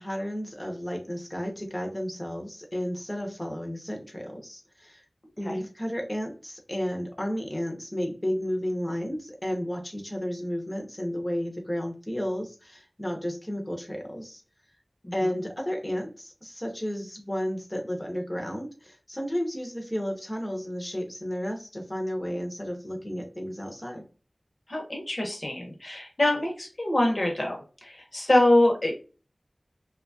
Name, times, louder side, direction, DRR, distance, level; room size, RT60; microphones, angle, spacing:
voice 1, 0.0-5.0 5.4-14.4 15.1-24.0, equal, 20° left, 1 dB, 0.8 m, -32 dB
voice 2, 24.7-29.0, left 1 dB, 45° left, 1 dB, 0.9 m, -25 dB
2.8 x 2.3 x 2.6 m, 0.36 s
wide cardioid pair, 60°, 0 cm